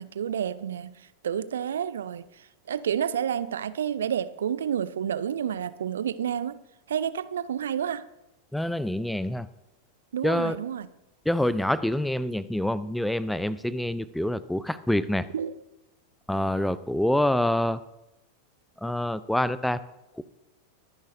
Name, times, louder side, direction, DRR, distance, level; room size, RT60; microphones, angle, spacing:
voice 1, 0.0-6.6 6.9-8.0 10.1-10.9 15.3-15.6, right 9 dB, 65° right, 16 dB, 0.6 m, -30 dB
voice 2, 8.5-9.5 10.2-10.6 11.3-15.3 16.3-17.8 18.8-19.8 20.2-20.3, left 1 dB, 5° left, 17 dB, 0.5 m, -26 dB
23.0 x 10.5 x 2.7 m, 0.94 s
figure-of-eight pair, 90°, 0 cm